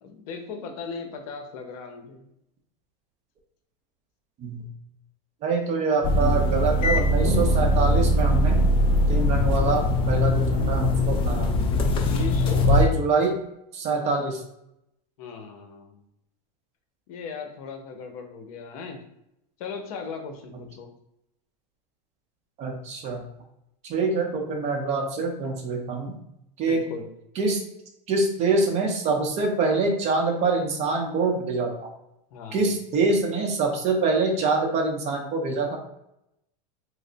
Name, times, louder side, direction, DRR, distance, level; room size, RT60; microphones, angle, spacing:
voice 1, 0.0-2.2 12.1-12.7 15.2-16.0 17.1-19.0 19.6-20.9 26.7-27.1 32.3-32.6, left 4 dB, 60° left, 4 dB, 0.7 m, -37 dB
voice 2, 5.4-8.6 9.1-11.7 12.7-13.3 13.7-14.4 22.6-23.2 23.8-26.1 26.6-26.9 27.4-27.6 28.1-31.9 32.5-35.8, right 3 dB, 30° right, 2 dB, 0.6 m, -25 dB
sound 1, 6.0-12.9, left 1 dB, 25° left, 0.4 m, -21 dB
3.2 x 2.0 x 3.8 m, 0.82 s
supercardioid pair, 145°, 21 cm